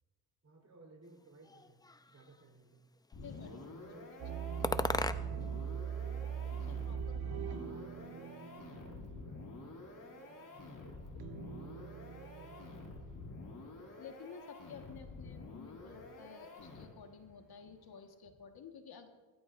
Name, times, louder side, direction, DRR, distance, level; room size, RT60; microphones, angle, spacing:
voice 1, 0.4-2.9 3.4-6.2 7.7-9.8 10.2-11.3 11.8-13.2, right 2 dB, 40° right, 0 dB, 4.0 m, -59 dB
sound 1, 1.4-2.4 3.1-3.7 4.6-5.6 5.9-6.9, left 2 dB, 10° left, 0.5 m, -38 dB
sound 2, 3.1-17.2, left 3 dB, 55° left, 4.4 m, -49 dB
voice 2, 3.2-3.6 6.5-7.8 14.0-19.1, left 6 dB, 70° left, 4 dB, 1.7 m, -53 dB
sound 3, 4.2-10.4 11.2-13.8, right 8 dB, 70° right, 1.4 m, -42 dB
20.5 x 12.5 x 2.7 m, 1.4 s
cardioid pair, 75°, 39 cm